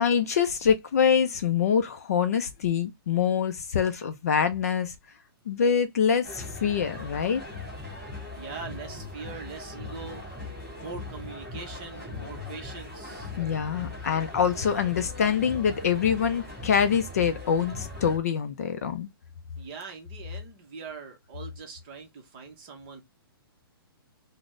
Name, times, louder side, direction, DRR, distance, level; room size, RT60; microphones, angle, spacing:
voice 1, 0.0-4.9 5.5-7.4 13.4-19.1, left 7 dB, 40° left, 0.4 m, -25 dB
sound 1, 6.2-18.2, left 2 dB, 5° left, 1.5 m, -40 dB
voice 2, 8.3-10.3 10.8-13.3 19.6-23.0, right 4 dB, 20° right, 0.7 m, -42 dB
3.8 x 2.0 x 3.1 m
hypercardioid pair, 175°, 13 cm